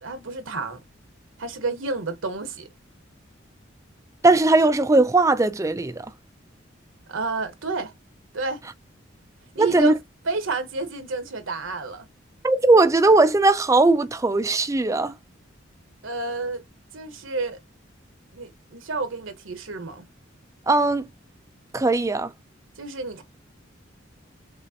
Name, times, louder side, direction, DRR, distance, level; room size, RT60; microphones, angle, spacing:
voice 1, 0.0-0.8 1.4-2.7 7.1-7.9 8.3-8.6 9.5-9.9 10.2-12.1 16.0-16.6 16.9-17.6 18.3-20.1 22.8-23.2, right 3 dB, 85° right, 1.1 m, -30 dB
voice 2, 4.2-6.1 9.6-9.9 12.4-15.1 20.7-21.1 21.7-22.3, right 2 dB, 15° right, 0.4 m, -18 dB
6.1 x 2.5 x 2.7 m
head